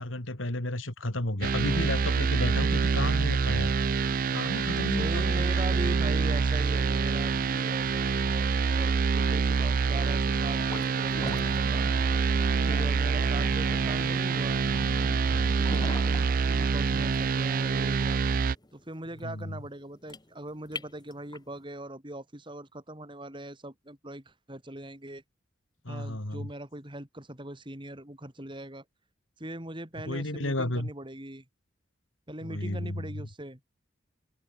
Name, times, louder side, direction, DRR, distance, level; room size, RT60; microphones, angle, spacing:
voice 1, 0.0-3.7 4.3-5.6 15.3-15.5 19.2-19.6 25.8-26.5 30.1-30.9 32.4-33.1, left 1 dB, 85° left, 3.4 m, -32 dB
sound 1, 1.4-18.5, right 5 dB, 45° right, 0.4 m, -26 dB
voice 2, 4.9-11.9 12.7-14.6 15.6-18.2 18.7-25.2 25.9-28.8 29.4-31.4 32.3-33.7, right 1 dB, 25° right, 3.6 m, -41 dB
sound 2, 10.5-21.6, left 2 dB, 20° left, 2.1 m, -43 dB
open air
head